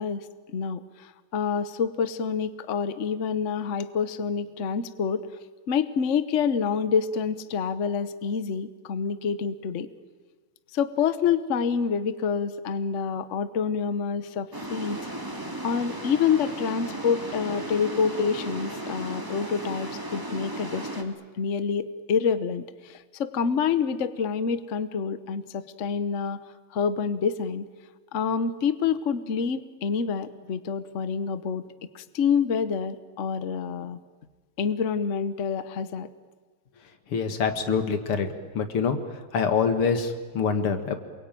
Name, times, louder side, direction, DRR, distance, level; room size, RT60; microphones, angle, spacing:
voice 1, 0.0-5.3 5.7-9.9 10.7-15.1 15.6-26.4 26.7-27.7 28.1-31.7 31.9-34.0 34.6-36.1, left 6 dB, 45° left, 12 dB, 1.1 m, -27 dB
sound 1, 14.5-21.0, right 1 dB, 10° right, 2.4 m, -35 dB
voice 2, 37.1-38.3 38.5-39.0 39.3-41.0, left 5 dB, 90° left, 7 dB, 2.7 m, -25 dB
28.0 x 22.5 x 9.1 m, 1.4 s
omnidirectional pair, 2.3 m